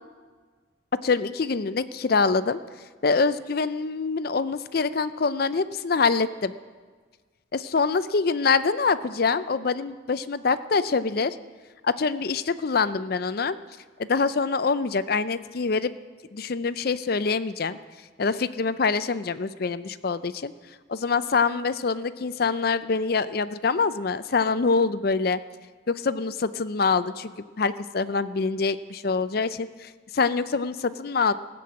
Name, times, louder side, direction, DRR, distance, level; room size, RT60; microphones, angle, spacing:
voice 1, 1.0-2.6 3.0-6.5 7.5-11.4 11.8-13.6 14.0-15.9 16.3-17.8 18.2-20.5 20.9-25.4 25.9-27.3 27.6-31.3, left 4 dB, 50° left, 14 dB, 0.5 m, -25 dB
16.5 x 7.7 x 8.6 m, 1.5 s
head